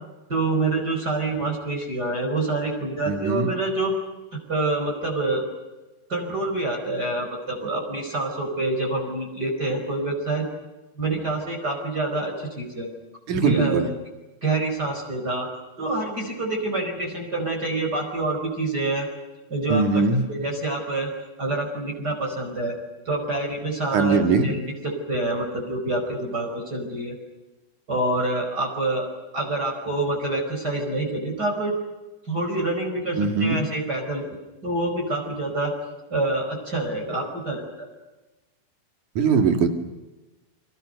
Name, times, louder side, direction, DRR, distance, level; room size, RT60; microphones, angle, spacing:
voice 1, 0.3-3.9 4.3-5.4 6.1-10.4 11.0-12.9 13.3-13.9 14.4-15.5 15.8-19.1 19.5-20.0 20.3-21.1 21.4-22.7 23.1-27.2 27.9-29.1 29.3-31.7 32.3-34.2 34.6-35.7 36.1-37.9, right 2 dB, 25° right, 0 dB, 5.3 m, -27 dB
voice 2, 3.1-3.5 13.3-13.9 19.7-20.2 23.9-24.5 33.1-33.6 39.2-39.7, right 4 dB, 55° right, 6 dB, 3.7 m, -21 dB
29.5 x 25.0 x 6.6 m, 1.1 s
omnidirectional pair, 4.4 m